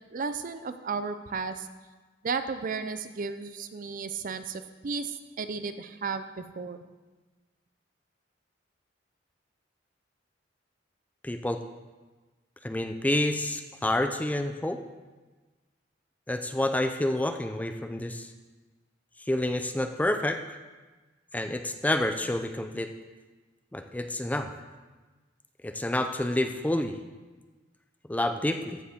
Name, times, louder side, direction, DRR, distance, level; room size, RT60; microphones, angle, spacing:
voice 1, 0.1-1.7 2.2-6.8, right 5 dB, 45° right, 10 dB, 0.5 m, -34 dB
voice 2, 11.2-11.6 12.6-14.8 16.3-18.3 19.3-20.4 21.3-22.9 23.7-24.5 25.6-27.0 28.1-28.8, left 1 dB, 10° left, 7 dB, 0.4 m, -28 dB
14.0 x 7.0 x 3.6 m, 1.3 s
head